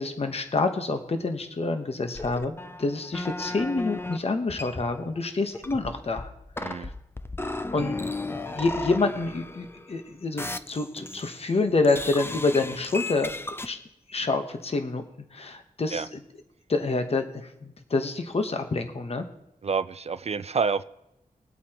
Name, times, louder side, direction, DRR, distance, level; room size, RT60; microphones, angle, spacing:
voice 1, 0.0-6.3 6.6-6.9 7.7-8.0 8.4-13.3 13.6-13.8 14.1-15.0 15.3-16.2 16.7-19.3, left 3 dB, 45° left, 6 dB, 1.0 m, -27 dB
sound 1, 2.1-4.2 4.5-5.2 5.5-10.0 10.4-11.5 11.8-13.7, left 2 dB, 15° left, 0.5 m, -35 dB
voice 2, 6.6-6.9 15.9-16.1 19.6-20.8, right 5 dB, 45° right, 14 dB, 0.4 m, -28 dB
21.5 x 8.3 x 2.9 m, 0.88 s
wide cardioid pair, 105°, 14 cm